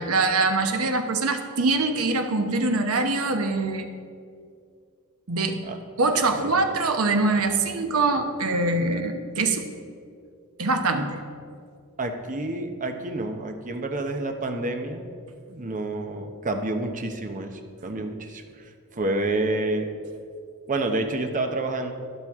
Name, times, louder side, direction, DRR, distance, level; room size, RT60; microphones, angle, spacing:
voice 1, 0.0-3.9 5.3-5.6 6.0-9.6 10.6-11.2, right 3 dB, 70° right, 5 dB, 0.9 m, -23 dB
voice 2, 12.0-15.0 15.5-18.4 18.9-19.9 20.7-21.9, right 2 dB, 35° right, 5 dB, 0.8 m, -28 dB
12.0 x 10.5 x 3.6 m, 2.3 s
head